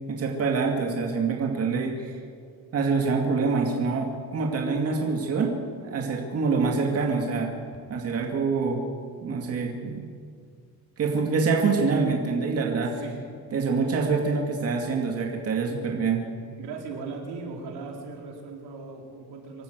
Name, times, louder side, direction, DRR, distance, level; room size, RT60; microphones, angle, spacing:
voice 1, 0.1-2.2 2.7-5.5 5.8-7.5 7.9-8.8 9.2-10.0 11.0-12.9 13.5-16.2, right 4 dB, 40° right, 1 dB, 2.3 m, -25 dB
voice 2, 16.6-19.6, right 4 dB, 85° right, 0 dB, 4.4 m, -38 dB
25.5 x 13.0 x 8.0 m, 2.2 s
cardioid pair, 165°, 38 cm